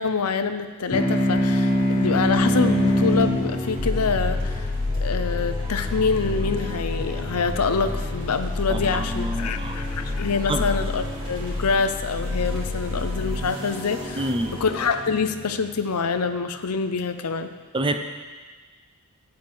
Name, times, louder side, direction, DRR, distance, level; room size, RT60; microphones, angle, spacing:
voice 1, 0.0-4.7 5.0-14.3 14.6-17.5, left 5 dB, 85° left, 9 dB, 0.7 m, -26 dB
sound 1, 0.9-5.8, left 1 dB, 30° left, 1.4 m, -23 dB
sound 2, 1.1-16.6, right 1 dB, 55° right, 3.4 m, -37 dB
sound 3, 3.8-13.3, left 3 dB, 10° left, 1.1 m, -29 dB
voice 2, 8.7-9.8 10.5-10.7 14.1-14.6 17.7-18.0, right 1 dB, 20° right, 6 dB, 0.6 m, -27 dB
13.5 x 9.2 x 3.5 m, 1.4 s
head